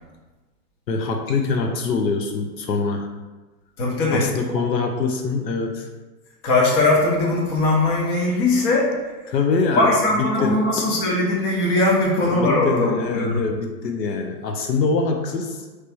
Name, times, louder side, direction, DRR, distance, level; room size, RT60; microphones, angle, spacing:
voice 1, 0.9-3.1 4.1-5.9 9.3-10.9 12.2-15.6, left 4 dB, 85° left, 3 dB, 0.7 m, -24 dB
voice 2, 3.8-4.3 6.4-9.3 9.7-13.4, left 2 dB, 30° left, -2 dB, 1.1 m, -20 dB
3.3 x 3.2 x 4.3 m, 1.2 s
hypercardioid pair, 130°, 49 cm